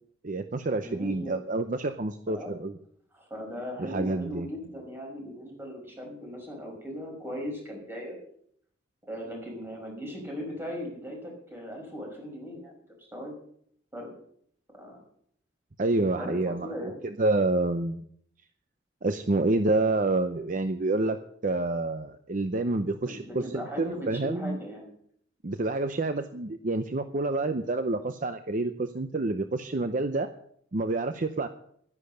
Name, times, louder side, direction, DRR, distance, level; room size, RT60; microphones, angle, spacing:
voice 1, 0.2-2.8 3.8-4.5 15.8-18.0 19.0-24.6 25.4-30.3 30.7-31.5, right 2 dB, 45° right, 9 dB, 0.7 m, -28 dB
voice 2, 0.8-1.4 2.3-2.6 3.1-8.2 9.1-12.7 13.1-13.3 13.9-14.1 14.8-15.0 16.2-16.9 23.0-24.9, equal, 10° right, 0 dB, 5.6 m, -38 dB
12.0 x 10.5 x 6.7 m, 0.66 s
head